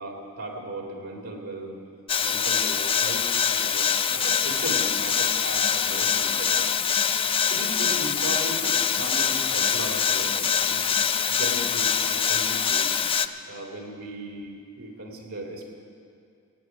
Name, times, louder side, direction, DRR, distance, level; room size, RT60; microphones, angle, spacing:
voice 1, 0.0-1.8 2.2-6.7 7.0-10.9 11.3-12.9 13.5-15.7, right 1 dB, 80° right, 0 dB, 2.6 m, -37 dB
sound 1, 2.1-13.3, left 7 dB, 25° left, 0.4 m, -24 dB
Alarm, 3.8-13.1, left 1 dB, 75° left, 1.4 m, -46 dB
16.5 x 8.3 x 9.3 m, 2.3 s
head